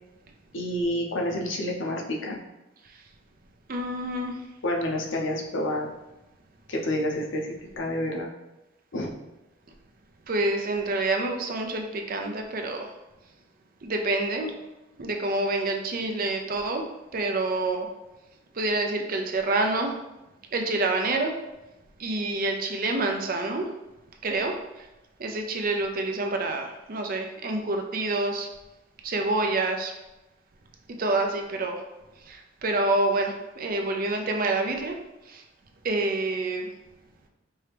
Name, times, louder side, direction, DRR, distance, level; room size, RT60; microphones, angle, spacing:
voice 1, 0.5-2.4 4.6-5.9 6.7-8.3 8.9-9.1, left 1 dB, 70° left, 0 dB, 0.7 m, -29 dB
voice 2, 3.7-4.3 10.3-12.9 13.8-14.5 15.0-16.8 17.1-17.9 18.6-19.9 20.5-21.3 22.0-23.7 24.2-24.5 25.2-28.5 29.0-29.9 31.0-31.8 32.3-34.9 35.3-35.4 35.8-36.7, right 2 dB, 45° right, 4 dB, 0.5 m, -27 dB
4.6 x 2.8 x 3.4 m, 1.0 s
head